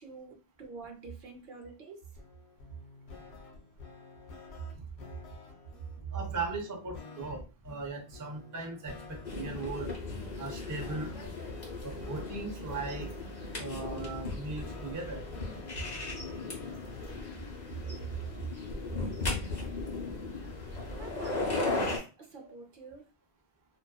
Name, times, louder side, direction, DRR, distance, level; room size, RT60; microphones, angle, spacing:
voice 1, 0.0-2.1 20.9-23.1, right 4 dB, 60° right, 2 dB, 0.7 m, -48 dB
sound 1, 2.1-17.5, left 4 dB, 85° left, 0.9 m, -50 dB
voice 2, 6.1-9.9 10.4-11.1 11.8-13.1 13.6-15.3 22.4-22.5, right 3 dB, 30° right, 2 dB, 0.3 m, -38 dB
sound 2, 9.2-22.0, left 2 dB, 45° left, 0.9 m, -37 dB
2.5 x 2.3 x 2.3 m, 0.33 s
omnidirectional pair, 1.1 m